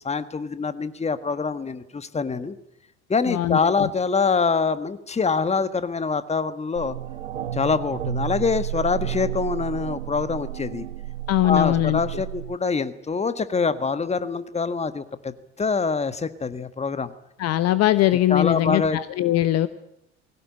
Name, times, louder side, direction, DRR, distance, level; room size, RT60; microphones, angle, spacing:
voice 1, 0.0-2.6 3.1-6.9 7.5-10.9 11.4-17.1 18.3-19.0, left 5 dB, 20° left, 12 dB, 1.6 m, -25 dB
voice 2, 3.3-3.9 11.3-12.0 17.4-19.7, left 14 dB, 45° left, 14 dB, 1.0 m, -21 dB
sound 1, 6.7-12.6, right 12 dB, 80° right, 0.8 m, -32 dB
20.5 x 17.5 x 9.9 m, 0.80 s
figure-of-eight pair, 65°, 35 cm